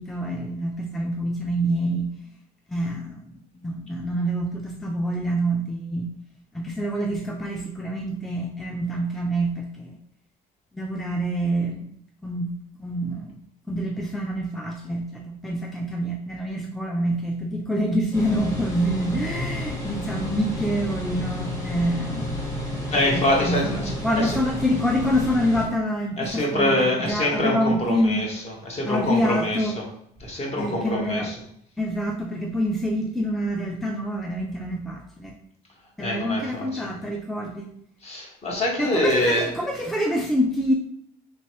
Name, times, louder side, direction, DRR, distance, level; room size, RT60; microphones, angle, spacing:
voice 1, 0.0-2.1 2.7-3.3 3.5-6.1 6.5-10.0 10.7-11.9 12.2-13.4 13.7-22.3 22.9-28.3 28.9-29.8 30.6-31.3 31.8-35.4 36.0-37.7 38.8-40.7, equal, ahead, 1 dB, 0.3 m, -26 dB
sound 1, 18.1-25.7, left 1 dB, 20° left, 1.2 m, -31 dB
voice 2, 22.9-24.4 26.2-28.4 28.6-29.8 30.2-31.3 36.0-36.9 38.0-39.5, left 1 dB, 40° left, -1 dB, 1.1 m, -25 dB
3.2 x 3.0 x 3.0 m, 0.70 s
cardioid pair, 110°, 17 cm